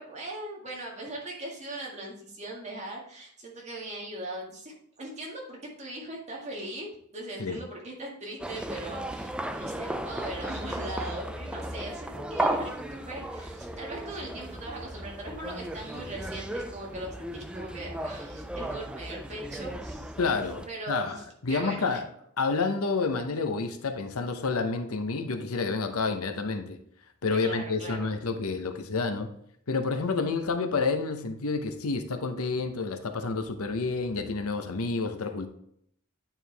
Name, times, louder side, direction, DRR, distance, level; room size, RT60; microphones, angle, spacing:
voice 1, 0.0-20.1 20.7-22.0 27.3-28.1, right 1 dB, 35° right, -2 dB, 1.9 m, -40 dB
sound 1, 8.4-20.7, right 1 dB, 5° right, 0.4 m, -35 dB
voice 2, 20.2-21.2 21.4-22.0 22.4-26.8 27.2-29.3 29.7-35.5, left 4 dB, 85° left, 7 dB, 0.9 m, -29 dB
9.0 x 4.6 x 3.4 m, 0.69 s
head